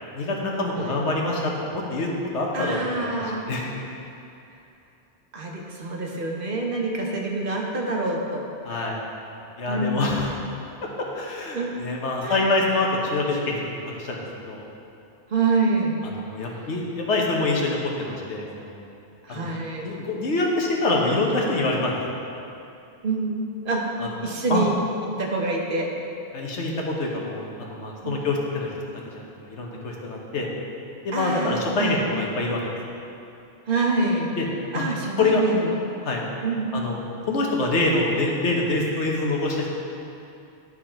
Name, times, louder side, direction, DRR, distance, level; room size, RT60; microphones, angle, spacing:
voice 1, 0.1-3.7 8.6-9.0 9.6-10.3 10.8-14.7 16.3-18.8 19.3-19.5 19.8-22.3 24.0-24.2 24.5-24.6 26.3-30.5 31.0-32.6 34.4-34.5 34.7-34.8 35.2-35.4 36.0-36.2 36.7-37.0 37.3-39.7, left 2 dB, 80° left, -1 dB, 1.4 m, -26 dB
voice 2, 2.5-3.4 5.3-8.4 9.7-10.2 11.5-11.7 12.2-12.4 15.3-16.0 19.2-19.9 23.0-23.9 24.2-24.8 25.2-25.9 28.0-28.3 31.1-32.0 33.7-34.3 34.7-35.7 36.4-36.7, right 3 dB, 55° right, -1 dB, 1.0 m, -26 dB
11.0 x 4.8 x 4.4 m, 2.7 s
omnidirectional pair, 1.2 m